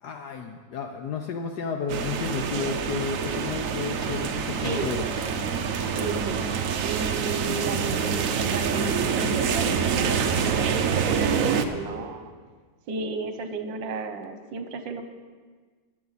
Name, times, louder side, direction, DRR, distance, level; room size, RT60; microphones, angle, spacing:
voice 1, 0.0-5.1, left 5 dB, 65° left, 4 dB, 1.2 m, -32 dB
sound 1, 1.9-11.6, right 6 dB, 60° right, 0.9 m, -26 dB
sound 2, 3.6-12.0, equal, 15° left, 2.2 m, -46 dB
voice 2, 4.6-5.0 5.9-6.4 6.8-12.3 12.9-15.0, right 4 dB, 75° right, 8 dB, 1.6 m, -34 dB
15.0 x 11.0 x 4.1 m, 1.5 s
omnidirectional pair, 2.0 m